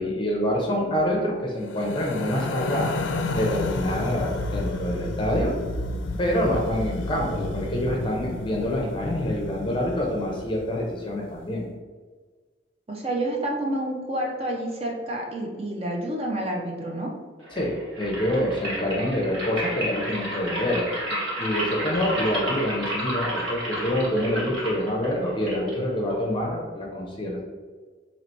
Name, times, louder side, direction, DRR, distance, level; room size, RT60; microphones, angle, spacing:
voice 1, 0.0-2.9 3.3-5.5 6.2-11.6 17.5-27.4, equal, 25° left, -1 dB, 0.6 m, -26 dB
sound 1, 1.6-10.9, left 2 dB, 75° left, 0.4 m, -31 dB
voice 2, 12.9-17.1, right 1 dB, 30° right, -1 dB, 0.6 m, -29 dB
sound 2, 17.4-26.4, equal, 85° right, 1.4 m, -32 dB
2.9 x 2.8 x 4.4 m, 1.5 s
head